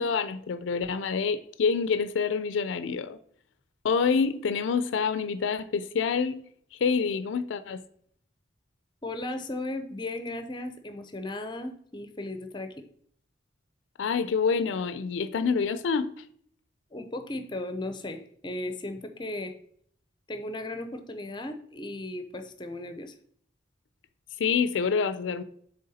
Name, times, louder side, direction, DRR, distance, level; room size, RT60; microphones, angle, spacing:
voice 1, 0.0-3.2 3.8-6.4 6.7-7.8 14.0-16.1 24.4-25.4, left 5 dB, 85° left, 0.4 m, -27 dB
voice 2, 9.0-12.8 16.9-19.5 20.3-23.1, left 2 dB, 25° left, 0.5 m, -36 dB
7.6 x 3.4 x 4.2 m
head